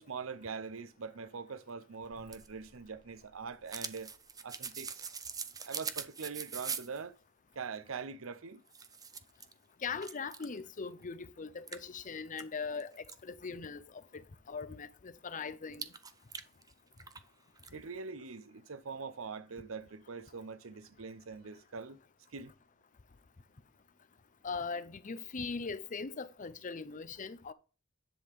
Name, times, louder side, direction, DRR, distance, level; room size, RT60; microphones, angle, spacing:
voice 1, 0.0-4.1 4.4-5.1 5.6-7.2 7.5-8.6 17.7-22.0 22.3-22.5, right 5 dB, 85° right, 0.7 m, -43 dB
sound 1, 2.1-7.0 8.2-8.3 8.7-9.5 10.0-10.6 11.0-11.1 11.7-13.2 15.7-17.3 17.6-17.7, right 6 dB, 20° right, 0.6 m, -43 dB
voice 2, 9.8-15.9 24.4-27.5, left 5 dB, 40° left, 0.6 m, -40 dB
10.5 x 3.8 x 6.6 m
head